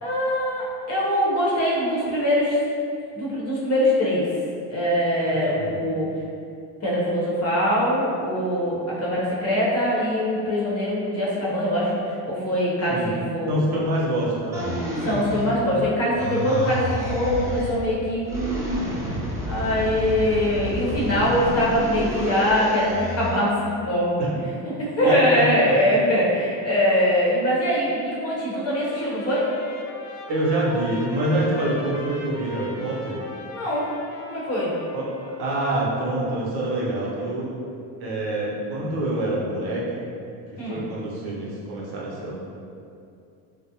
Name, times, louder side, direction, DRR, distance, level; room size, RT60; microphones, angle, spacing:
voice 1, 0.0-2.6 3.1-4.3 4.7-6.1 6.8-13.6 15.0-18.8 19.1-19.2 19.4-29.5 33.5-33.9 34.3-34.7 40.6-40.8, equal, 30° left, -6 dB, 0.9 m, -23 dB
voice 2, 5.5-5.8 12.9-14.8 24.2-24.3 25.0-25.5 30.3-33.2 34.9-37.5 38.0-40.1 40.7-42.3, right 1 dB, 50° right, -5 dB, 0.8 m, -26 dB
sound 1, 14.5-15.8 16.2-17.8 18.2-23.4, equal, 5° right, 0.4 m, -30 dB
Trumpet, 28.5-35.7, left 2 dB, 75° left, 0.5 m, -41 dB
2.5 x 2.0 x 2.8 m, 2.5 s
hypercardioid pair, 80°, 47 cm